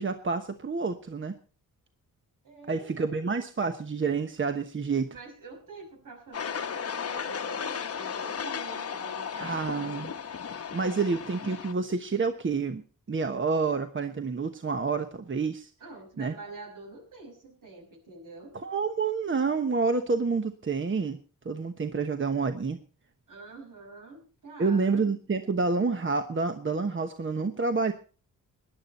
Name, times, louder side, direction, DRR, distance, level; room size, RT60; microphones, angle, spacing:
voice 1, 0.0-1.3 2.7-5.1 9.4-10.1 10.7-12.8 13.1-15.7 16.2-16.3 18.6-21.2 21.4-22.8 24.6-27.9, right 4 dB, 35° right, 8 dB, 1.1 m, -28 dB
voice 2, 2.4-3.3 5.1-10.2 10.8-11.1 15.8-18.6 23.3-25.1, right 3 dB, 70° right, 3 dB, 5.8 m, -47 dB
sound 1, 6.3-11.7, left 6 dB, 45° left, 0.9 m, -35 dB
18.5 x 11.0 x 4.2 m, 0.37 s
cardioid pair, 85°, 33 cm